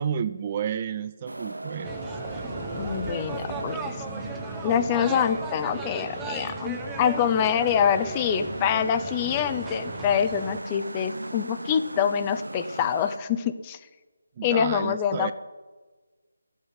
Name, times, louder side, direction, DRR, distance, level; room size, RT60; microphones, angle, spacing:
voice 1, 0.0-1.9 14.4-15.3, right 8 dB, 25° right, 13 dB, 0.4 m, -31 dB
sound 1, 1.3-13.2, right 2 dB, 85° right, 0.8 m, -38 dB
sound 2, 1.8-10.6, right 3 dB, 10° right, 0.8 m, -37 dB
voice 2, 2.7-3.9 4.6-13.8 14.4-15.3, left 8 dB, 20° left, 10 dB, 0.6 m, -25 dB
12.0 x 8.1 x 10.0 m, 1.3 s
figure-of-eight pair, 160°, 0 cm